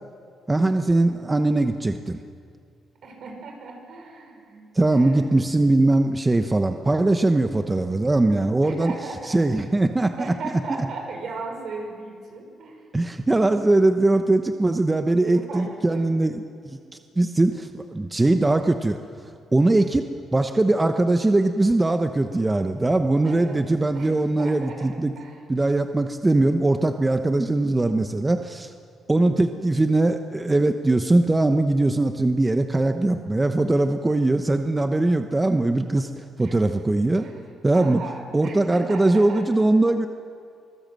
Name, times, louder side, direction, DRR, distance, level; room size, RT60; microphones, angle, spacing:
voice 1, 0.5-2.2 4.7-8.9 9.3-10.3 12.9-19.0 19.5-25.1 25.5-28.7 29.1-37.2 37.6-38.0 38.3-40.1, right 2 dB, 20° right, 7 dB, 0.9 m, -21 dB
voice 2, 3.0-5.5 8.6-9.6 10.0-12.9 15.0-16.1 23.2-25.4 36.4-36.6 37.2-39.5, right 3 dB, 65° right, 3 dB, 5.0 m, -37 dB
24.5 x 16.5 x 7.7 m, 2.2 s
cardioid pair, 90°, 0 cm